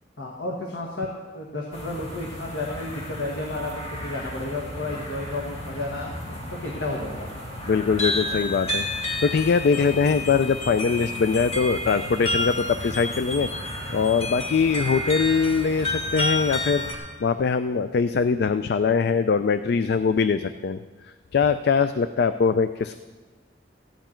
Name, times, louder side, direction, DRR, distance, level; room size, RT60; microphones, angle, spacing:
voice 1, 0.2-1.1 1.3-6.1 6.6-7.3, left 2 dB, 80° left, -1 dB, 1.5 m, -32 dB
sound 1, 1.7-17.0, left 1 dB, 35° left, 1.8 m, -31 dB
voice 2, 7.7-13.5 13.9-20.8 21.3-22.9, left 5 dB, 60° left, 11 dB, 0.4 m, -22 dB
15.0 x 10.5 x 4.4 m, 1.4 s
head